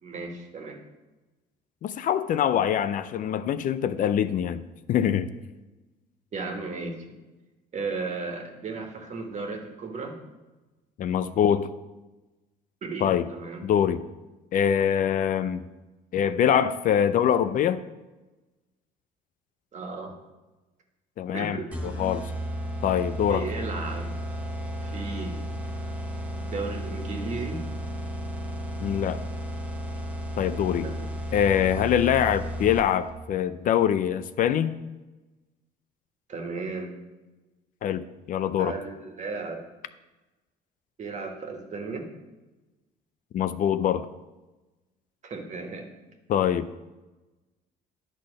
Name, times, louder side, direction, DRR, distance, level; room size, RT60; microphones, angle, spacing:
voice 1, 0.0-0.8 6.3-7.0 7.7-10.1 12.8-13.6 19.7-20.1 21.3-22.1 23.3-24.1 24.8-25.4 26.4-27.6 30.8-31.1 36.3-37.0 38.6-39.6 41.0-42.1 45.2-45.9, right 3 dB, 45° right, 3 dB, 1.6 m, -35 dB
voice 2, 1.8-4.6 4.9-5.3 11.0-11.7 13.0-13.3 13.6-14.0 14.5-15.7 16.1-17.8 21.2-21.6 21.8-22.3 22.8-23.5 28.8-29.2 30.4-30.9 31.3-34.7 37.8-38.7 43.3-44.1 46.3-46.8, left 9 dB, 50° left, 12 dB, 0.4 m, -24 dB
sound 1, 21.7-33.1, equal, 10° right, 1.0 m, -33 dB
10.5 x 4.1 x 6.4 m, 1.1 s
cardioid pair, 110°, 17 cm